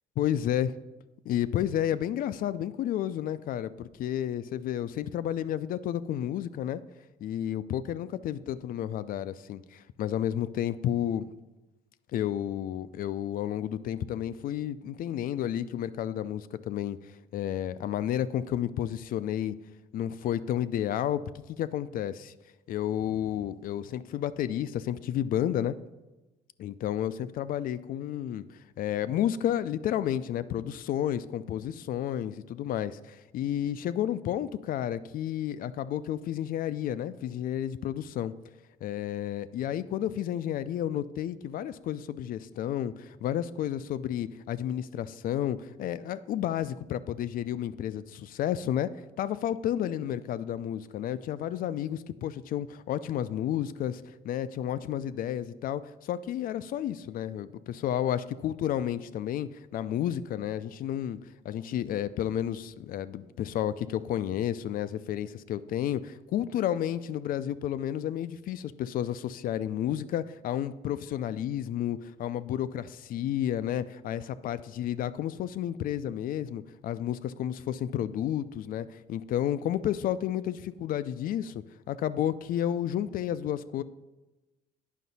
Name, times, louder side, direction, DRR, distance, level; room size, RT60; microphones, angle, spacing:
voice 1, 0.2-0.7 1.3-6.8 7.2-11.3 12.1-17.0 17.3-19.6 19.9-21.2 21.5-22.3 22.7-25.8 26.6-28.4 28.8-38.3 38.8-83.8, left 11 dB, 55° left, 15 dB, 0.4 m, -31 dB
9.3 x 5.7 x 4.1 m, 1.1 s
cardioid pair, 110°, 17 cm